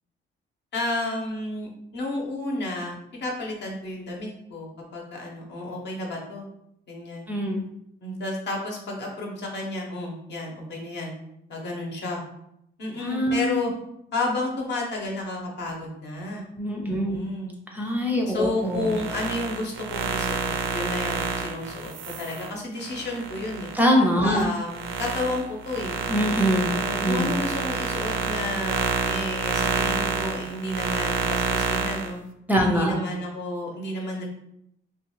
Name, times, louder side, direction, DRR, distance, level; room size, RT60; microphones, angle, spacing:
voice 1, 0.7-6.5 6.9-7.3 8.0-11.2 11.5-12.2 12.8-13.7 14.1-16.5 16.8-17.5 18.3-21.9 22.2-23.7 24.2-26.0 26.6-32.2 32.6-34.3, left 2 dB, 60° left, -1 dB, 0.9 m, -31 dB
voice 2, 7.3-7.6 13.0-13.6 16.6-17.2 17.7-18.9 23.7-24.4 26.1-27.3 32.5-32.9, equal, 10° right, 0 dB, 0.4 m, -23 dB
sound 1, 18.7-23.8 24.3-32.1, right 5 dB, 75° right, 0.4 m, -28 dB
2.4 x 2.3 x 3.0 m, 0.77 s
cardioid pair, 90°, 20 cm